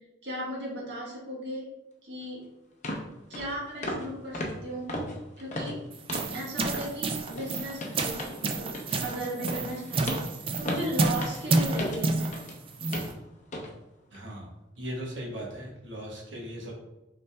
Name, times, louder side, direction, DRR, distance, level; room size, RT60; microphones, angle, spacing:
voice 1, 0.2-1.7 2.0-2.4 3.3-4.9 5.4-5.8 6.3-10.3 10.6-12.4, right 1 dB, 65° right, -5 dB, 1.5 m, -36 dB
sound 1, 2.2-2.3 2.8-3.1 3.3-3.5 3.8-4.1 4.3-6.4 6.7-6.9 7.3-12.6 12.9-13.2 13.5-13.7 14.1-14.3, left 1 dB, 40° left, 0.6 m, -36 dB
sound 2, 5.9-13.1, right 3 dB, 30° right, 0.3 m, -30 dB
voice 2, 14.1-16.7, equal, 85° right, -2 dB, 1.1 m, -38 dB
5.4 x 3.3 x 2.2 m, 0.96 s
head